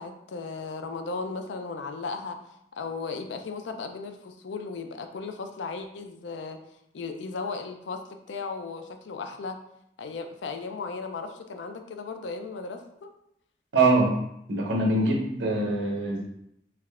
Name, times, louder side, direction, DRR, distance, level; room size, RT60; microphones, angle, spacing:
voice 1, 0.0-2.4 2.8-6.6 6.9-8.0 8.3-9.6 10.0-13.1, left 4 dB, 80° left, 6 dB, 0.4 m, -36 dB
voice 2, 13.7-14.2 14.5-16.2, right 2 dB, 80° right, -1 dB, 0.8 m, -23 dB
3.3 x 3.1 x 2.4 m, 0.77 s
head